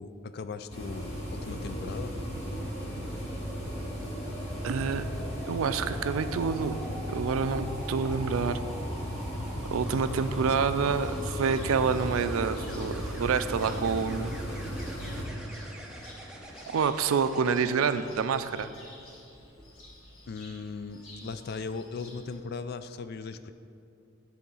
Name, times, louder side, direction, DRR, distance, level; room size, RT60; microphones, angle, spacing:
voice 1, 0.0-2.1 20.3-23.5, left 4 dB, 50° left, 11 dB, 0.3 m, -38 dB
sound 1, 0.7-15.3, equal, 30° left, 1.8 m, -36 dB
sound 2, 1.4-17.5 19.4-19.7, right 1 dB, 5° right, 0.6 m, -45 dB
voice 2, 4.6-5.0 5.5-6.8 7.1-8.6 9.7-14.4 16.7-18.7, right 5 dB, 80° right, 11 dB, 0.4 m, -28 dB
Cricket, 11.0-22.3, left 1 dB, 80° left, 1.8 m, -52 dB
10.0 x 3.8 x 5.5 m, 2.5 s
head